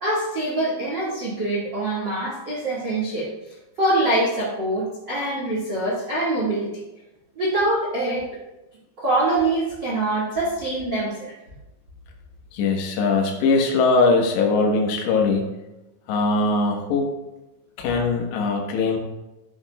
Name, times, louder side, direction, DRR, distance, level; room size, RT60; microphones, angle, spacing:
voice 1, 0.0-3.3 3.8-6.7 7.3-8.2 9.0-11.3, right 2 dB, 65° right, -6 dB, 1.1 m, -24 dB
voice 2, 12.5-15.5 16.1-17.1 17.8-19.0, left 3 dB, 70° left, 0 dB, 3.2 m, -21 dB
12.5 x 8.6 x 2.4 m, 1.0 s
omnidirectional pair, 5.7 m